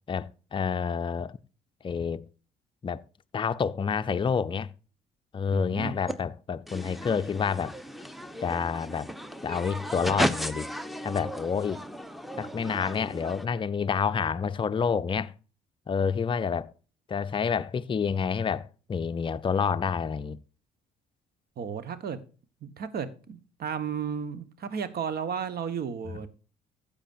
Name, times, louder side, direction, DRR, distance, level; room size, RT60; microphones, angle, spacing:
voice 1, 0.1-1.4 1.8-2.3 2.8-3.0 3.3-4.7 5.3-7.8 8.4-9.1 9.4-10.7 11.0-11.8 12.4-15.3 15.9-16.7 17.1-20.4, left 6 dB, 25° left, 0.6 m, -28 dB
voice 2, 5.5-5.9 21.6-22.2 22.6-26.3, right 7 dB, 45° right, 1.4 m, -33 dB
sound 1, 6.1-6.2 6.7-13.5, equal, ahead, 1.0 m, -34 dB
15.5 x 6.9 x 2.6 m
figure-of-eight pair, 50°, 21 cm